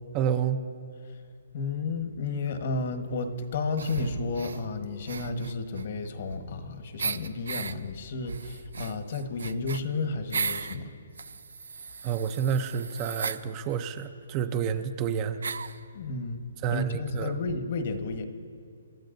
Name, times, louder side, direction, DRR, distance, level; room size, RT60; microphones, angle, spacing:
voice 1, 0.1-0.6 12.0-15.4 16.6-17.3, right 8 dB, 25° right, 9 dB, 0.6 m, -29 dB
voice 2, 1.5-10.9 15.9-18.2, left 3 dB, 50° left, 7 dB, 1.3 m, -32 dB
sound 1, 3.8-4.6 5.0-6.6 7.0-7.7 8.2-10.8 11.2-13.4 14.3-14.4 14.6-14.7 15.4-15.8, right 5 dB, 75° right, 0.6 m, -35 dB
29.0 x 12.5 x 2.6 m, 2.3 s
hypercardioid pair, 155°, 0 cm